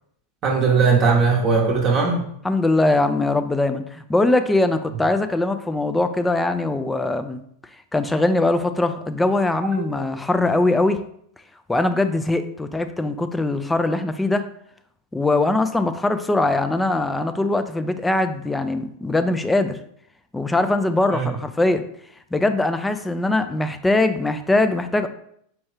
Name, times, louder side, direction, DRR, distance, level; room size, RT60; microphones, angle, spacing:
voice 1, 0.4-2.2 9.8-9.9 21.1-21.3, right 4 dB, 35° right, 0 dB, 0.8 m, -19 dB
voice 2, 2.4-7.4 7.9-11.0 11.7-14.5 15.1-19.8 20.3-21.8 22.3-25.1, left 2 dB, 10° left, 9 dB, 0.3 m, -21 dB
4.5 x 2.6 x 3.3 m, 0.68 s
figure-of-eight pair, 90°, 0 cm